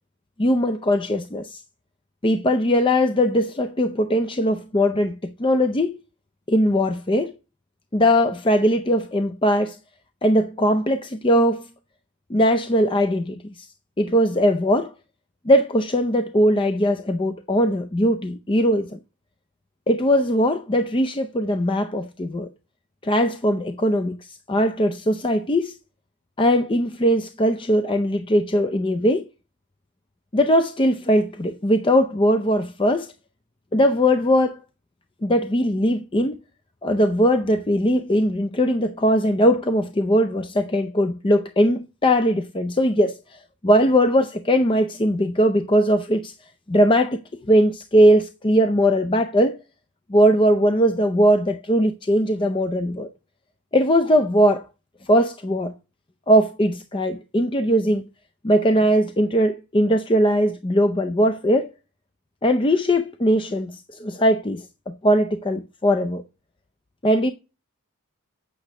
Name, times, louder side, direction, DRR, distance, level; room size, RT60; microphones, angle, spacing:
voice 1, 0.4-1.6 2.2-6.0 6.5-7.3 7.9-9.8 10.2-11.7 12.3-13.7 14.0-14.9 15.5-19.0 19.9-22.5 23.0-25.8 26.4-29.3 30.3-33.1 33.7-34.6 35.2-36.4 36.8-46.3 46.7-47.2 47.5-49.6 50.1-53.1 53.7-54.7 55.1-55.7 56.3-58.0 58.4-61.7 62.4-66.2 67.0-67.3, equal, 20° left, 0.5 m, -20 dB
8.6 x 6.5 x 5.9 m
head